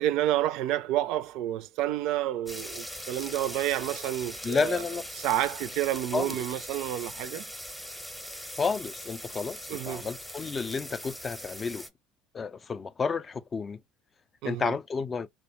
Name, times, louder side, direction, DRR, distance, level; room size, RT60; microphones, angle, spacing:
voice 1, 0.0-4.8 5.2-7.5 9.7-10.1 14.4-14.7, right 13 dB, 65° right, 0.3 m, -29 dB
sound 1, 2.5-11.9, equal, 5° left, 0.7 m, -41 dB
voice 2, 4.4-5.1 6.1-6.4 8.6-11.9 12.3-13.8 14.4-15.3, left 5 dB, 30° left, 0.3 m, -31 dB
2.6 x 2.1 x 3.0 m
hypercardioid pair, 75°, 0 cm